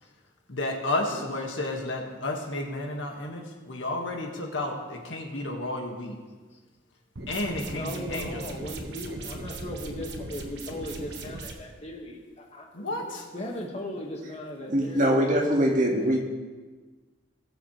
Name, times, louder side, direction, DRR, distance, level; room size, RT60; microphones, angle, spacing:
voice 1, 0.5-6.1 7.3-8.5 12.7-13.2, left 2 dB, 80° left, 1 dB, 1.7 m, -32 dB
sound 1, 7.2-11.5, right 2 dB, 65° right, 1.2 m, -38 dB
voice 2, 7.7-13.0 13.3-15.3, left 1 dB, 35° left, 0 dB, 1.7 m, -38 dB
voice 3, 14.7-16.2, equal, 45° right, 0 dB, 1.8 m, -22 dB
20.0 x 7.3 x 3.2 m, 1.4 s
head